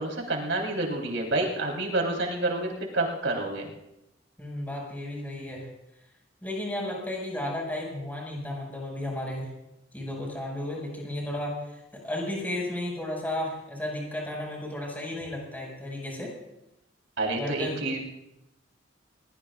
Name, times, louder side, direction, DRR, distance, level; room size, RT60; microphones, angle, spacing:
voice 1, 0.0-3.7 17.2-18.0, right 2 dB, 90° right, 0 dB, 3.8 m, -28 dB
voice 2, 4.4-5.7 6.4-9.5 9.9-16.3 17.4-17.8, left 1 dB, 10° left, -2 dB, 5.6 m, -33 dB
22.5 x 20.0 x 2.5 m, 0.89 s
head